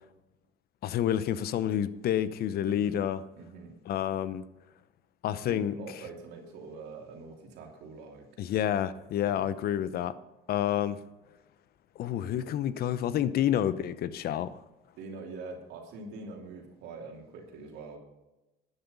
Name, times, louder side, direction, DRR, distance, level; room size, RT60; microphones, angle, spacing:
voice 1, 0.8-3.2 3.9-4.4 5.2-5.8 8.4-10.1 10.5-11.0 12.0-14.6, left 10 dB, 65° left, 15 dB, 0.8 m, -29 dB
voice 2, 2.6-3.0 3.4-3.7 5.5-8.3 9.2-9.5 15.0-18.0, right 3 dB, 85° right, 1 dB, 3.0 m, -44 dB
12.0 x 9.8 x 5.4 m, 0.99 s
cardioid pair, 110°, 17 cm